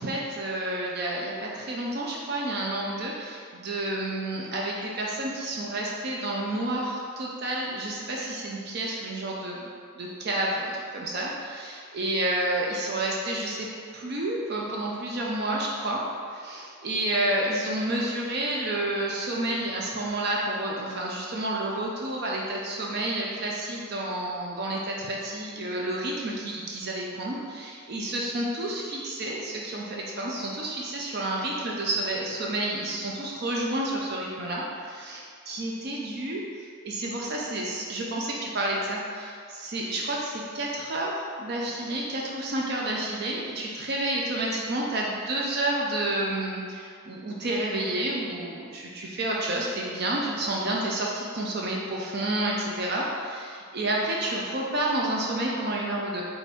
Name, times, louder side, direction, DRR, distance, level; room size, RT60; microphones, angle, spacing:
voice 1, 0.0-13.7 13.9-16.0 16.3-56.2, right 1 dB, 50° right, -3 dB, 0.5 m, -30 dB
4.2 x 3.4 x 3.5 m, 2.2 s
head